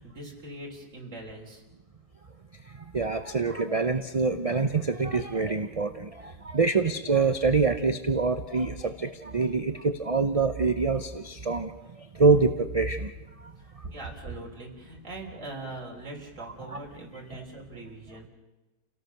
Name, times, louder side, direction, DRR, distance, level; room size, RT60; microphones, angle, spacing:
voice 1, 0.0-1.6 13.6-18.3, right 2 dB, 50° right, -1 dB, 4.0 m, -41 dB
voice 2, 2.7-11.7 12.0-13.1 13.4-13.5 17.3-17.4, right 4 dB, 30° right, 9 dB, 0.7 m, -25 dB
30.0 x 18.0 x 6.6 m, 1.2 s
omnidirectional pair, 1.7 m